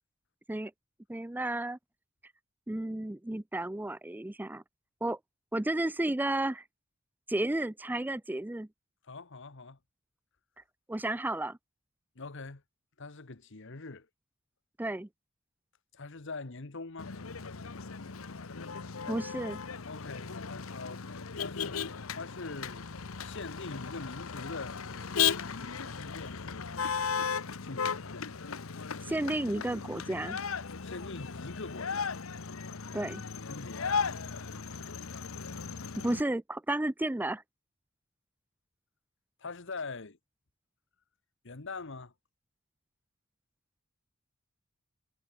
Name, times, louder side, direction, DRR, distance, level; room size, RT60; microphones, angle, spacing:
voice 1, 1.1-1.8 2.7-4.6 5.0-5.2 5.5-6.6 7.3-8.7 10.9-11.6 14.8-15.1 19.1-19.6 29.1-30.4 32.9-33.2 36.0-37.4, right 1 dB, 10° right, 0.4 m, -32 dB
voice 2, 9.0-9.8 12.1-12.6 13.0-14.1 15.9-17.1 19.8-21.8 22.1-22.9 23.2-26.9 27.6-28.2 30.8-32.3 33.5-34.1 39.4-40.2 41.4-42.1, left 3 dB, 65° left, 1.3 m, -43 dB
Motor vehicle (road), 17.0-36.2, left 6 dB, 90° left, 1.0 m, -36 dB
head